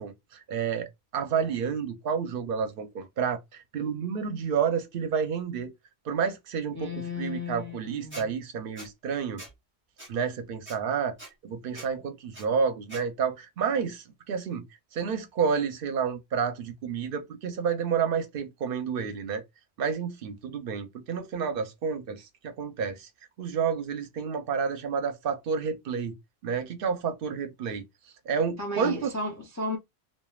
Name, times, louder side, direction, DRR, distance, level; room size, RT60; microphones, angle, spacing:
voice 1, 0.0-5.7 6.1-9.4 10.1-11.2 11.4-14.7 14.9-19.4 19.8-23.1 23.4-26.2 26.4-27.9 28.3-29.1, right 6 dB, 60° right, 0.7 m, -30 dB
voice 2, 6.7-8.3 28.6-29.8, left 2 dB, 25° left, 0.4 m, -34 dB
Squeak, 8.1-8.3 8.8-8.9 9.4-9.5 10.0-10.1 10.7-10.8 11.2-11.3 11.7-11.9 12.3-12.5 12.9-13.0, right 1 dB, 10° right, 0.8 m, -43 dB
3.2 x 2.2 x 2.3 m
omnidirectional pair, 1.1 m